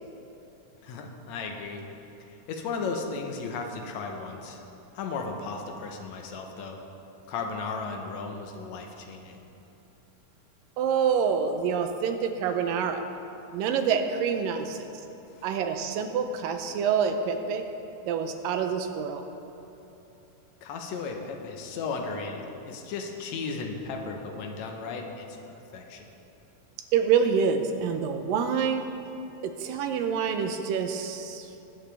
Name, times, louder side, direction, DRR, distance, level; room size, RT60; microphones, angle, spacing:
voice 1, 0.8-1.8 2.5-4.6 4.9-6.8 7.3-9.4 15.4-15.5 20.6-25.3 25.7-26.1, left 4 dB, 70° left, 2 dB, 1.9 m, -35 dB
voice 2, 10.8-13.0 13.5-14.9 15.4-17.6 18.0-19.2 26.9-28.9 29.4-31.5, right 6 dB, 80° right, 6 dB, 2.4 m, -27 dB
20.5 x 7.3 x 3.4 m, 3.0 s
omnidirectional pair, 4.0 m